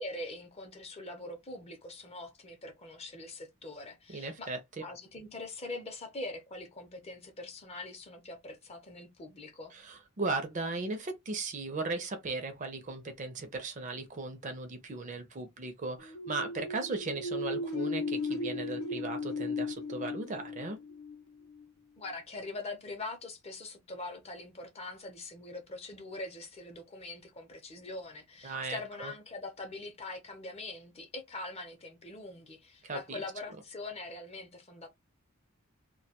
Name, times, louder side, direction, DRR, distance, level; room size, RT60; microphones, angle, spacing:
voice 1, 0.0-4.5 4.8-9.7 22.0-34.9, left 2 dB, 30° left, 0.6 m, -43 dB
voice 2, 4.1-4.8 9.7-20.8 28.4-29.1 32.8-33.2, right 3 dB, 35° right, 0.5 m, -37 dB
sound 1, 16.0-21.6, left 2 dB, 75° left, 0.5 m, -36 dB
2.2 x 2.2 x 2.8 m
head